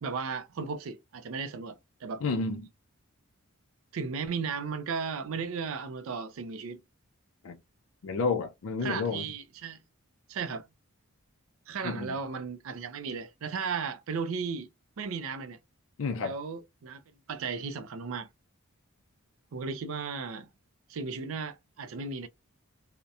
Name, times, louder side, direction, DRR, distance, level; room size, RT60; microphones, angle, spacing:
voice 1, 0.0-2.2 3.9-6.8 8.8-9.8 10.3-10.7 11.7-14.7 15.0-15.6 16.2-17.0 17.3-18.3 19.5-20.5 20.9-22.3, right 5 dB, 65° right, 0.4 m, -35 dB
voice 2, 2.2-2.6 7.4-7.6 8.0-9.2 11.8-12.1 16.0-16.4, left 4 dB, 65° left, 0.4 m, -30 dB
2.7 x 2.1 x 2.3 m
head